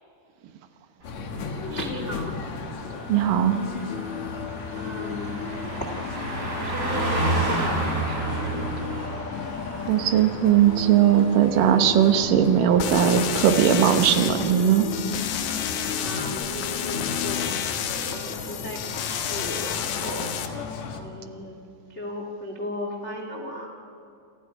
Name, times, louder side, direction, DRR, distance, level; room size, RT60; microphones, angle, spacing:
sound 1, 1.0-21.0, left 5 dB, 55° left, 2.3 m, -34 dB
Car passing by, 1.1-13.0 13.3-13.6, right 2 dB, 20° right, 5.6 m, -32 dB
voice 1, 1.6-2.3 4.7-5.4 6.5-8.6 15.9-17.5 17.8-20.3 20.9-21.6 21.9-23.7, left 1 dB, 30° left, 2 dB, 1.4 m, -36 dB
voice 2, 3.1-3.6 9.9-14.9, right 10 dB, 65° right, 7 dB, 2.5 m, -19 dB
sound 2, 12.8-20.5, left 9 dB, 85° left, 3.5 m, -30 dB
28.5 x 28.5 x 5.0 m, 2.5 s
omnidirectional pair, 4.8 m